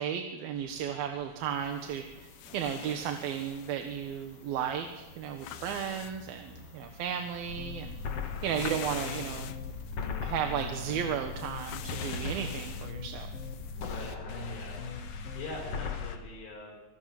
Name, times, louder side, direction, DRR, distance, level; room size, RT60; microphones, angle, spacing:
voice 1, 0.0-2.0 2.5-8.0 8.4-9.5 10.2-13.3, right 8 dB, 70° right, 5 dB, 3.0 m, -34 dB
sound 1, 0.5-16.1, right 1 dB, 85° right, 5.4 m, -54 dB
sound 2, 1.5-14.0, left 11 dB, 70° left, 2.0 m, -47 dB
sound 3, 7.5-16.2, left 5 dB, 50° left, 2.2 m, -38 dB
voice 2, 13.8-16.8, left 2 dB, 90° left, -3 dB, 7.2 m, -44 dB
26.5 x 19.5 x 7.8 m, 1.1 s
omnidirectional pair, 4.7 m